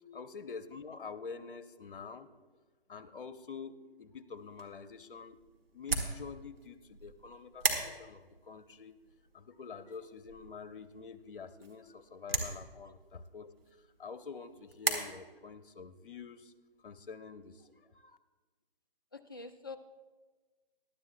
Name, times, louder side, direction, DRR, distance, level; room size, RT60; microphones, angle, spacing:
voice 1, 0.1-2.3 2.9-5.4 5.7-9.0 9.3-13.5 13.8-16.5 16.8-18.2, left 5 dB, 60° left, 11 dB, 0.8 m, -47 dB
sound 1, 4.4-14.9, right 3 dB, 70° right, 1.8 m, -39 dB
voice 2, 19.1-19.8, left 4 dB, 25° left, 5 dB, 0.4 m, -46 dB
20.0 x 12.0 x 2.2 m, 1.3 s
figure-of-eight pair, 145°, 31 cm